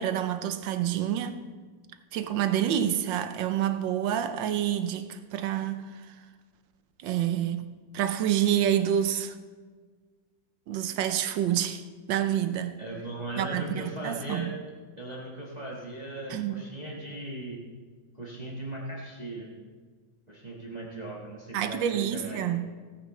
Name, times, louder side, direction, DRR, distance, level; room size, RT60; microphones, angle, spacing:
voice 1, 0.0-1.4 2.1-6.1 7.0-9.3 10.7-11.8 12.1-12.8 13.4-14.5 16.3-16.6 21.5-22.6, right 10 dB, 75° right, 1.3 m, -28 dB
voice 2, 12.8-14.5 15.0-17.6 18.1-19.5 20.3-22.5, right 1 dB, 20° right, 1.6 m, -38 dB
17.5 x 9.4 x 3.2 m
omnidirectional pair, 2.1 m